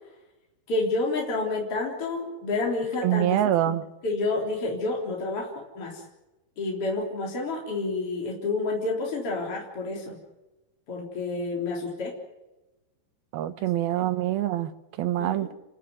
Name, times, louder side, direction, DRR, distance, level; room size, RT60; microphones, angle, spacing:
voice 1, 0.7-3.4 4.0-6.0 6.6-10.2 10.9-12.1 13.6-13.7 13.9-14.1 15.2-15.5, left 3 dB, 35° left, 4.5 m, -29 dB
voice 2, 3.0-3.9 13.3-14.7 15.0-15.5, right 13 dB, 75° right, 2.9 m, -25 dB
30.0 x 12.5 x 9.5 m
omnidirectional pair, 4.5 m